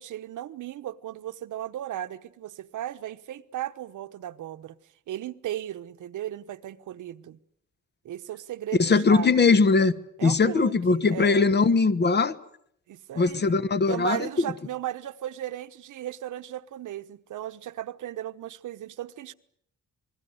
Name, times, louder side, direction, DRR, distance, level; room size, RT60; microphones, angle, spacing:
voice 1, 0.0-4.8 5.1-7.4 8.0-9.5 10.2-11.5 12.9-13.5 13.9-19.3, right 12 dB, 85° right, 1.1 m, -36 dB
voice 2, 8.8-10.0 10.2-12.4 13.1-14.3, left 4 dB, 35° left, 1.2 m, -21 dB
28.0 x 21.0 x 8.0 m
wide cardioid pair, 150°, 30 cm